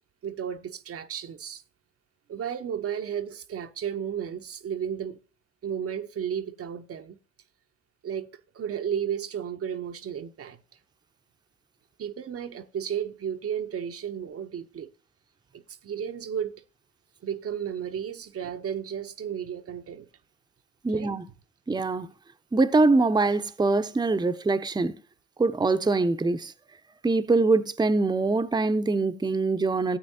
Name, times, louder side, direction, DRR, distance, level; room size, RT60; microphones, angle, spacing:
voice 1, 0.2-1.6 2.3-5.2 5.6-7.2 8.0-8.3 8.5-10.6 12.0-14.9 15.5-16.6 17.2-20.1 20.9-21.1, right 8 dB, 45° right, 0.7 m, -33 dB
voice 2, 20.8-21.2 21.7-22.1 22.5-24.9 25.4-26.5 27.0-30.0, right 3 dB, 15° right, 0.7 m, -23 dB
14.0 x 8.5 x 2.7 m
hypercardioid pair, 45°, 32 cm